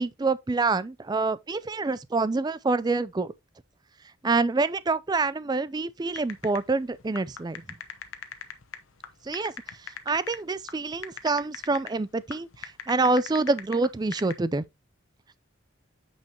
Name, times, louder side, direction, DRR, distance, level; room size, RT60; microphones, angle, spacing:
voice 1, 0.0-3.3 4.2-7.6 9.2-9.5 9.8-14.6, right 3 dB, 20° right, 0.3 m, -26 dB
sound 1, 6.1-14.3, left 8 dB, 85° left, 1.0 m, -40 dB
8.9 x 5.5 x 2.8 m
head